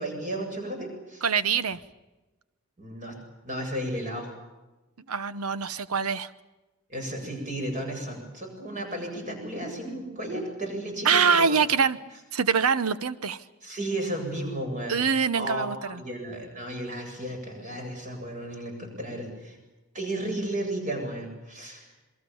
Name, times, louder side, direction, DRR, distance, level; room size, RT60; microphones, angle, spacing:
voice 1, 0.0-1.3 2.8-3.1 3.4-4.3 6.9-11.6 13.6-15.0 15.3-19.6 19.9-21.9, right 1 dB, 35° right, 3 dB, 7.9 m, -33 dB
voice 2, 1.2-1.8 5.1-6.3 11.0-12.0 12.3-13.4 14.9-16.0, right 6 dB, 85° right, 14 dB, 1.0 m, -24 dB
28.0 x 22.5 x 7.1 m, 1.1 s
head